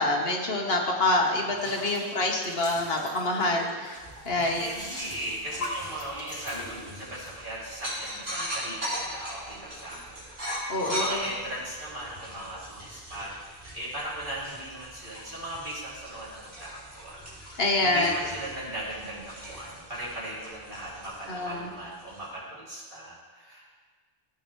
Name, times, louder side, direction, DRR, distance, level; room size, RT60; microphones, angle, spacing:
voice 1, 0.0-4.0 4.3-4.7 10.7-11.2 17.6-18.1 21.3-21.7, left 2 dB, 70° left, 1 dB, 1.5 m, -26 dB
sound 1, 1.5-7.3, left 1 dB, 15° left, 3.7 m, -41 dB
voice 2, 1.6-2.0 4.3-17.3 17.8-23.7, right 1 dB, 55° right, -7 dB, 3.0 m, -38 dB
sound 2, 3.9-22.3, equal, 80° right, 4.0 m, -40 dB
16.0 x 8.2 x 3.2 m, 1.5 s
omnidirectional pair, 1.0 m